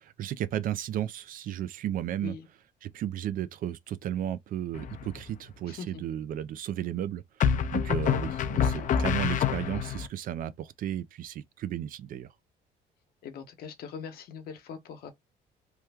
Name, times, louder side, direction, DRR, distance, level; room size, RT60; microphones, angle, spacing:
voice 1, 0.0-2.4 2.8-12.3, right 11 dB, 55° right, 0.4 m, -34 dB
sound 1, 4.7-5.3 7.4-10.1, left 8 dB, 50° left, 0.5 m, -27 dB
voice 2, 5.7-6.0 13.2-15.1, left 6 dB, 65° left, 1.0 m, -41 dB
3.1 x 2.2 x 3.4 m
cardioid pair, 110°, 17 cm